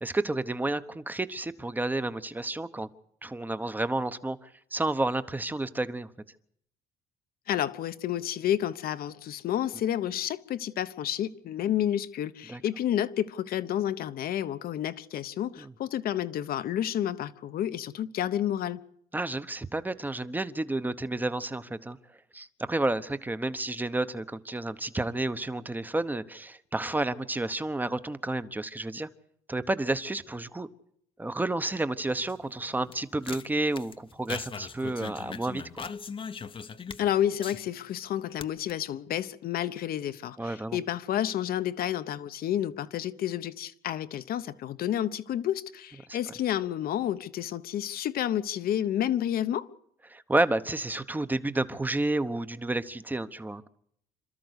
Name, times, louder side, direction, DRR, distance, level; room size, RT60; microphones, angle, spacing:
voice 1, 0.0-2.9 3.2-6.1 12.5-12.6 15.6-15.7 19.1-22.0 22.3-29.1 29.5-30.7 31.2-35.8 40.4-40.8 46.1-46.2 50.1-53.7, right 2 dB, 10° right, 1.0 m, -31 dB
voice 2, 7.5-18.8 37.0-49.7, left 11 dB, 60° left, 1.1 m, -30 dB
sound 1, 32.1-38.0 38.3-38.7, left 6 dB, 30° left, 0.9 m, -40 dB
27.5 x 13.5 x 8.2 m
cardioid pair, 110°, 17 cm